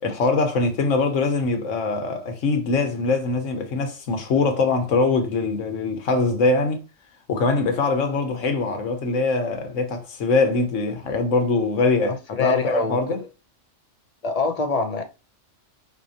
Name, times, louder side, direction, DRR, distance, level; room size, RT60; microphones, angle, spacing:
voice 1, 0.0-6.8 7.3-13.2, left 3 dB, 80° left, 1.3 m, -22 dB
voice 2, 12.0-13.0 14.2-15.0, left 4 dB, 45° left, 0.5 m, -24 dB
4.6 x 3.9 x 2.7 m
omnidirectional pair, 1.3 m